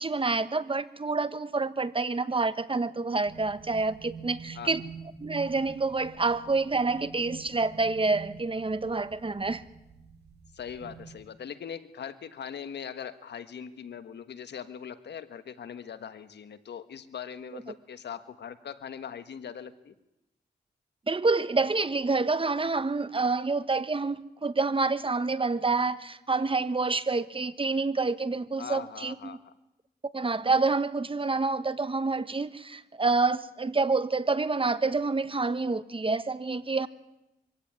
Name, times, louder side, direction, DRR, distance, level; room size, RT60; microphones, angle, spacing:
voice 1, 0.0-4.8 5.2-9.6 21.1-29.4 30.1-36.9, right 3 dB, 30° right, 1.3 m, -28 dB
sound 1, 3.3-11.2, right 6 dB, 75° right, 2.4 m, -47 dB
voice 2, 10.5-19.9 28.6-29.5, left 7 dB, 85° left, 1.4 m, -41 dB
24.5 x 16.5 x 9.5 m
cardioid pair, 70°, 17 cm